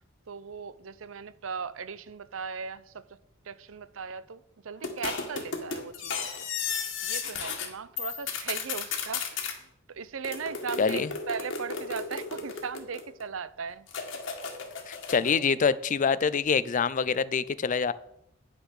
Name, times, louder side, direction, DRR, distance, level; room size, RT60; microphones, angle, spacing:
voice 1, 0.3-3.0 3.4-6.5 7.0-9.4 9.9-13.9, right 6 dB, 80° right, 0.6 m, -38 dB
sound 1, 4.8-7.7 8.0-9.5 10.2-13.2 13.9-15.4, left 5 dB, 65° left, 1.8 m, -34 dB
voice 2, 10.8-11.1 14.9-17.9, left 5 dB, 40° left, 0.4 m, -25 dB
9.6 x 6.4 x 6.4 m
head